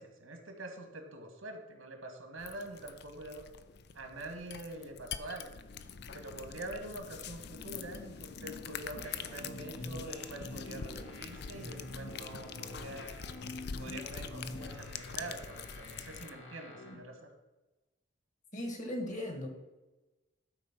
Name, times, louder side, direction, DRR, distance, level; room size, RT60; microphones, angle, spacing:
voice 1, 0.0-3.4 3.9-5.5 6.1-13.2 13.8-17.3, right 2 dB, 85° right, 4 dB, 1.9 m, -45 dB
sound 1, 2.4-16.3, left 6 dB, 50° left, 0.5 m, -45 dB
sound 2, 9.0-16.9, left 1 dB, 75° left, 1.9 m, -47 dB
voice 2, 18.5-19.5, left 1 dB, 35° left, 3 dB, 1.6 m, -37 dB
12.0 x 4.5 x 6.0 m, 1.1 s
head